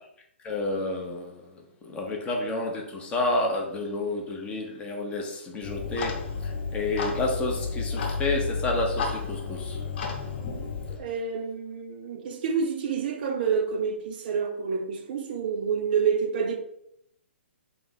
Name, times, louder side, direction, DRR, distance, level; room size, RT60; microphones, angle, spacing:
voice 1, 0.4-9.9 10.9-11.0, left 2 dB, 15° left, 0.5 m, -30 dB
Clock, 5.6-11.0, left 4 dB, 50° left, 0.9 m, -31 dB
voice 2, 11.0-16.6, right 6 dB, 45° right, 0.5 m, -28 dB
3.2 x 2.0 x 3.8 m
figure-of-eight pair, 130°, 7 cm